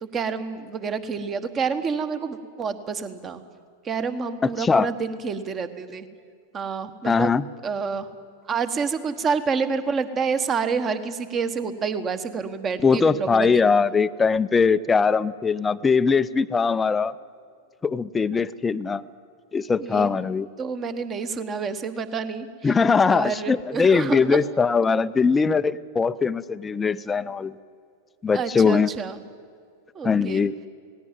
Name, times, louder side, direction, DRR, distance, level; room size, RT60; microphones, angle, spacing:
voice 1, 0.0-3.4 3.8-6.1 6.5-8.1 8.5-13.5 19.8-20.1 20.6-22.7 23.0-24.4 28.3-29.2 29.9-30.4, right 5 dB, 25° right, 12 dB, 1.3 m, -28 dB
voice 2, 4.4-4.9 7.0-7.4 12.8-17.1 17.8-19.0 19.5-20.5 22.6-27.5 28.2-28.9 30.0-30.5, left 5 dB, 15° left, 13 dB, 0.5 m, -21 dB
18.0 x 17.0 x 9.1 m, 2.2 s
figure-of-eight pair, 90°, 0 cm